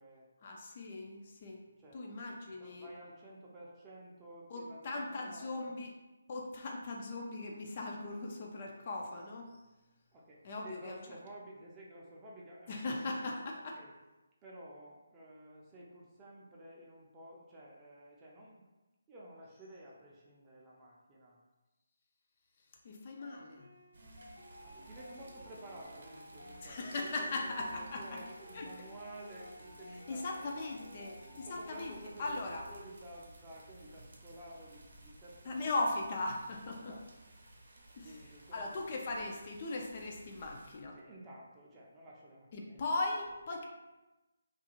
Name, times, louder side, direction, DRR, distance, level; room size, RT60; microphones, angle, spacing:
voice 1, 0.4-1.6 1.9-2.9 4.5-5.9 6.3-9.5 10.4-11.0 12.7-13.8 22.8-23.7 26.6-28.0 28.5-28.7 30.1-32.6 35.5-36.9 38.0-38.1 38.5-41.0 42.5-43.6, left 2 dB, 40° left, 0 dB, 0.3 m, -38 dB
voice 2, 2.5-5.7 10.1-13.9 14.4-18.6 19.1-21.4 24.6-30.8 31.3-35.7 36.7-37.1 37.9-38.8 40.9-42.8, right 1 dB, 15° right, -5 dB, 0.5 m, -52 dB
sound 1, 23.2-32.0, left 1 dB, 70° left, 0.8 m, -55 dB
sound 2, 23.9-40.8, right 1 dB, 55° right, 0.6 m, -57 dB
2.4 x 2.4 x 2.9 m, 1.1 s
figure-of-eight pair, 155°, 0 cm